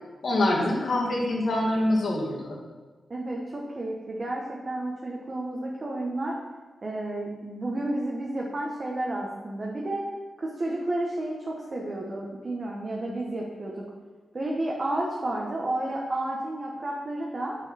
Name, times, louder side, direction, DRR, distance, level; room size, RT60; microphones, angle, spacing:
voice 1, 0.2-2.6, left 1 dB, 65° left, -4 dB, 2.1 m, -25 dB
voice 2, 3.1-6.4 6.8-10.1 10.4-13.8 14.3-17.6, right 1 dB, 40° right, -2 dB, 1.3 m, -31 dB
9.3 x 4.8 x 4.3 m, 1.4 s
cardioid pair, 85°, 0 cm